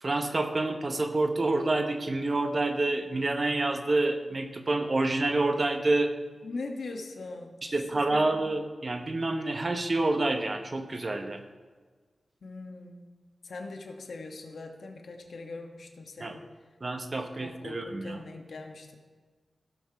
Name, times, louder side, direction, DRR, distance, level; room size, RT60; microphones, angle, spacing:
voice 1, 0.0-6.1 7.6-11.4 16.2-16.4 16.8-18.2, right 2 dB, 35° right, 6 dB, 1.0 m, -28 dB
voice 2, 6.4-8.4 12.4-13.1 13.4-16.6 17.2-19.0, left 3 dB, 75° left, 2 dB, 1.2 m, -41 dB
16.0 x 5.9 x 4.6 m, 1.5 s
wide cardioid pair, 105°, 0 cm